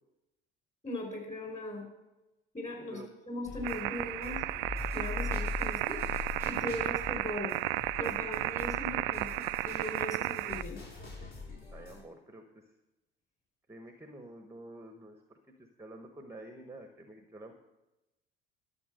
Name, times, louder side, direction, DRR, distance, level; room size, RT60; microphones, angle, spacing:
voice 1, 0.8-1.9 2.5-3.0 3.3-4.4 4.9-6.0 6.5-7.5 8.0-10.8, left 1 dB, 20° left, 1 dB, 5.2 m, -39 dB
sound 1, 3.4-12.0, left 4 dB, 45° left, 4.7 m, -42 dB
sound 2, 3.6-10.6, right 19 dB, 60° right, 0.4 m, -34 dB
voice 2, 11.7-12.6 13.7-17.5, right 1 dB, 10° right, 6 dB, 1.1 m, -49 dB
12.0 x 7.0 x 6.5 m, 0.99 s
figure-of-eight pair, 65°, 30 cm